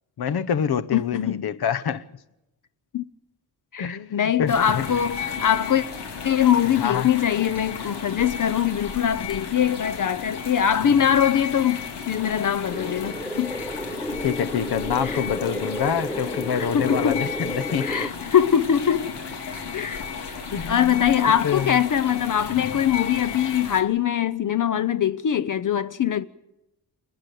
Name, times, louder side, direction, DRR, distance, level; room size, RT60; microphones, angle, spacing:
voice 1, 0.2-2.0 3.8-4.9 6.8-7.1 14.2-18.1 20.5-21.8, left 8 dB, 70° left, 1.0 m, -26 dB
voice 2, 0.9-1.5 2.9-3.0 3.7-5.8 6.2-13.6 15.0-15.2 16.6-17.3 17.8-19.1 19.7-20.0 20.3-20.4 20.7-26.2, left 9 dB, 50° left, 0.7 m, -22 dB
sound 1, 4.5-23.8, left 6 dB, 90° left, 3.1 m, -34 dB
sound 2, 12.7-18.1, equal, ahead, 0.6 m, -32 dB
28.5 x 9.9 x 9.2 m
wide cardioid pair, 150°, 39 cm